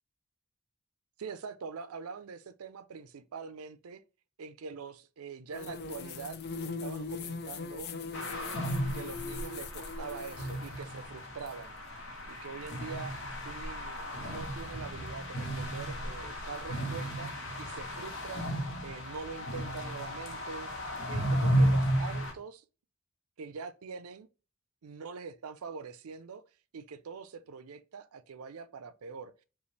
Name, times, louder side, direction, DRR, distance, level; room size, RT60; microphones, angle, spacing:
voice 1, 1.2-4.0 4.4-18.5 18.8-20.7 21.1-22.6 23.4-24.3 24.8-26.4 26.7-29.4, right 5 dB, 85° right, 0.5 m, -44 dB
sound 1, 5.5-10.7, left 4 dB, 50° left, 0.5 m, -40 dB
sound 2, 8.1-22.3, equal, 65° left, 1.0 m, -34 dB
5.4 x 2.4 x 3.2 m
head